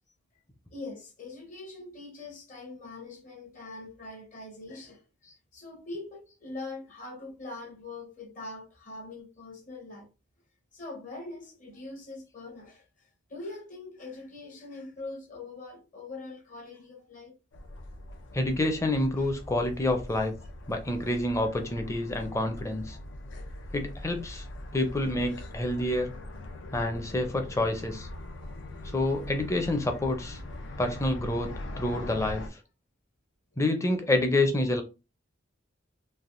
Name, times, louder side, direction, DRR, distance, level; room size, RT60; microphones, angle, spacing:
voice 1, 0.7-5.0 5.5-10.1 10.7-17.4 19.2-19.3 20.4-20.5 22.9-23.0 24.7-25.1 34.6-34.7, left 2 dB, 45° left, 0.9 m, -43 dB
sound 1, 17.5-32.5, left 1 dB, 80° left, 0.6 m, -42 dB
voice 2, 18.3-20.3 20.7-23.0 23.7-24.4 24.7-26.1 26.7-28.1 28.9-30.4 30.8-32.5 33.6-34.8, left 1 dB, 15° left, 0.5 m, -28 dB
3.3 x 2.5 x 2.5 m
head